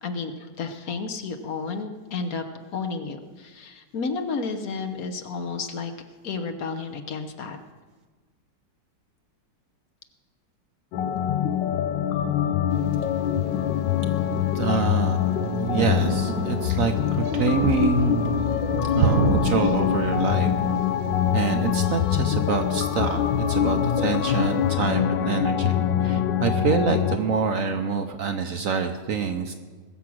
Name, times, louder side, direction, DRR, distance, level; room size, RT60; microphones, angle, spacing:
voice 1, 0.0-2.4 2.7-5.9 6.2-7.6 14.6-14.9, left 4 dB, 60° left, 6 dB, 1.3 m, -32 dB
sound 1, 10.9-27.2, left 9 dB, 85° left, 1.4 m, -24 dB
Thunder, 12.7-24.7, right 6 dB, 90° right, 1.6 m, -31 dB
voice 2, 14.3-18.5 18.9-20.5 21.3-29.5, right 6 dB, 60° right, 7 dB, 0.9 m, -27 dB
20.5 x 7.3 x 6.1 m, 1.4 s
omnidirectional pair, 1.9 m